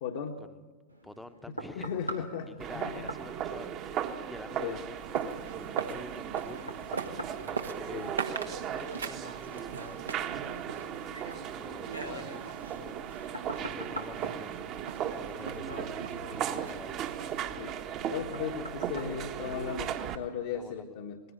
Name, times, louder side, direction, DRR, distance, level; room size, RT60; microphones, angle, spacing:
voice 1, 0.0-0.4 1.5-3.1 4.6-4.8 7.9-8.1 17.6-17.7 18.1-21.2, left 7 dB, 55° left, 2 dB, 1.5 m, -37 dB
sound 1, 0.9-20.2 20.7-20.8, right 1 dB, 90° right, 1.9 m, -46 dB
voice 2, 1.0-1.9 2.5-6.7 7.3-8.2 8.7-11.2 11.5-12.4 12.7-13.0 13.6-14.6 14.9-17.3 20.5-20.9, left 1 dB, 5° left, 10 dB, 1.2 m, -48 dB
sound 2, 2.6-20.1, right 9 dB, 35° right, 1.5 m, -37 dB
sound 3, 5.0-17.4, right 5 dB, 70° right, 1.7 m, -42 dB
20.5 x 16.0 x 9.9 m, 1.4 s
figure-of-eight pair, 90°, 0 cm